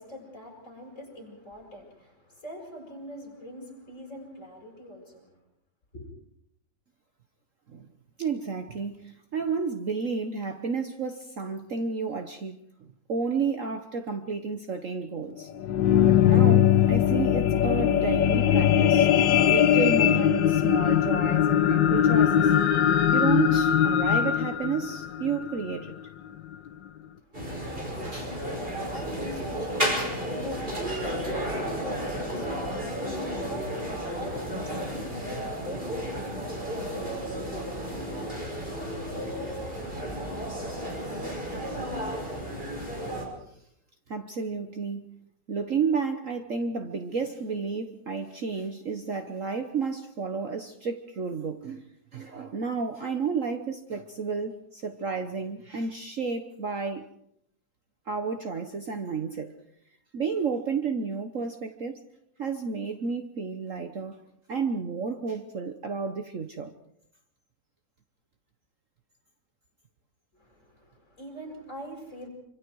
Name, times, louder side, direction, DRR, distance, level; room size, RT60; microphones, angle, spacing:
voice 1, 0.0-5.3 5.9-6.1 27.1-40.6 70.3-72.3, equal, 40° left, 0 dB, 7.5 m, -43 dB
voice 2, 8.2-12.6 13.1-15.5 16.0-19.1 19.5-22.5 23.1-25.9 28.0-28.4 44.1-45.2 45.5-51.9 52.1-57.1 58.1-59.5 60.1-62.0 62.4-66.7, right 5 dB, 50° right, 7 dB, 1.3 m, -31 dB
sound 1, 15.4-25.9 26.5-26.6, left 10 dB, 80° left, 1.7 m, -21 dB
sound 2, 27.3-43.3, equal, 30° right, 5.5 m, -33 dB
26.5 x 25.5 x 4.7 m, 0.74 s
omnidirectional pair, 2.0 m